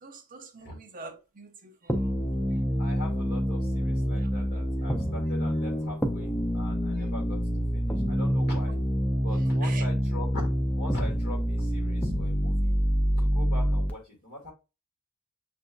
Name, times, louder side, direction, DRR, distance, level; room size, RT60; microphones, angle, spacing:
voice 1, 0.0-2.2 4.2-4.3 7.0-7.1 9.6-9.8, right 4 dB, 40° right, 0.6 m, -45 dB
sound 1, 1.9-13.9, equal, 5° left, 0.4 m, -27 dB
voice 2, 2.8-8.8 9.2-10.5 10.8-12.8 13.2-14.5, left 1 dB, 45° left, 2.0 m, -42 dB
6.7 x 2.5 x 2.2 m
head